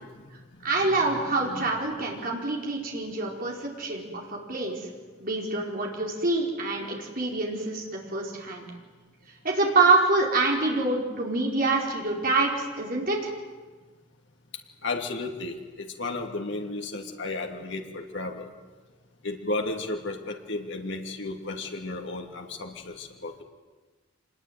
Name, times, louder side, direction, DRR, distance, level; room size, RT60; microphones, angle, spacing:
voice 1, 0.6-4.8 5.2-8.7 9.4-13.3, right 3 dB, 45° right, -1 dB, 4.7 m, -26 dB
voice 2, 1.3-1.7 14.8-18.5 19.2-23.4, left 2 dB, 60° left, 2 dB, 2.8 m, -33 dB
25.5 x 21.0 x 9.5 m, 1.3 s
head